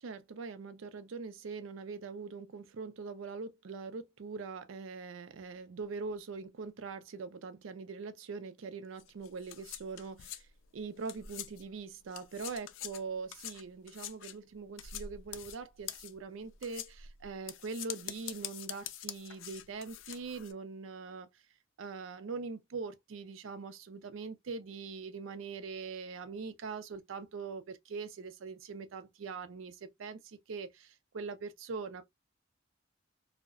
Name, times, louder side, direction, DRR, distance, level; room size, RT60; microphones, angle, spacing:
voice 1, 0.0-10.5 10.7-21.3 21.8-32.0, right 4 dB, 85° right, 0.5 m, -42 dB
sound 1, 9.0-11.8 12.1-20.5, left 10 dB, 75° left, 0.3 m, -45 dB
2.7 x 2.1 x 2.4 m
head